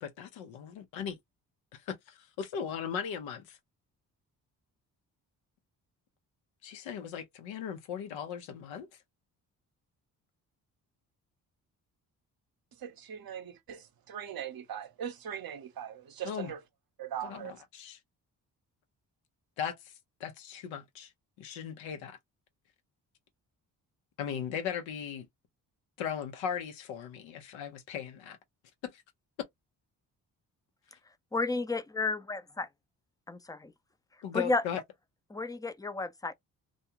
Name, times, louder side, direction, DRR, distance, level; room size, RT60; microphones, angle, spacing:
voice 1, 0.0-1.2 1.7-3.6 6.6-8.9 16.2-16.5 17.2-18.0 19.6-19.9 20.2-21.1 21.4-22.2 24.2-25.3 26.0-28.4 28.8-29.0 34.2-34.8, left 8 dB, 85° left, 0.9 m, -38 dB
voice 2, 12.8-16.6 17.0-17.5, right 9 dB, 50° right, 0.8 m, -40 dB
voice 3, 31.3-32.7 33.3-33.7 34.3-34.6 35.3-36.3, left 3 dB, 10° left, 0.5 m, -32 dB
2.4 x 2.3 x 2.8 m
hypercardioid pair, 45°, 45 cm